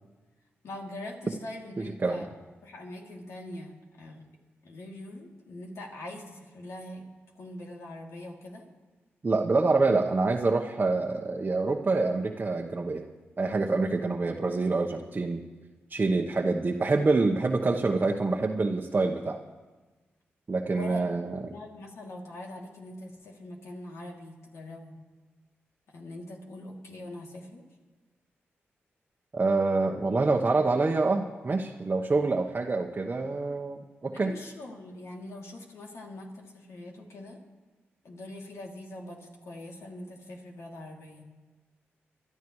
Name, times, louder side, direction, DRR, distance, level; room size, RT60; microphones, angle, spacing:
voice 1, 0.6-4.2 4.6-7.1 7.3-8.7 20.7-25.0 25.9-27.6 34.1-37.4 38.0-41.2, left 1 dB, 75° left, -1 dB, 2.8 m, -43 dB
voice 2, 1.8-2.2 9.2-13.0 13.4-15.4 15.9-19.4 20.5-21.5 29.3-34.3, right 3 dB, 40° right, 1 dB, 1.0 m, -26 dB
25.0 x 12.0 x 3.2 m, 1.3 s
cardioid pair, 50°, 5 cm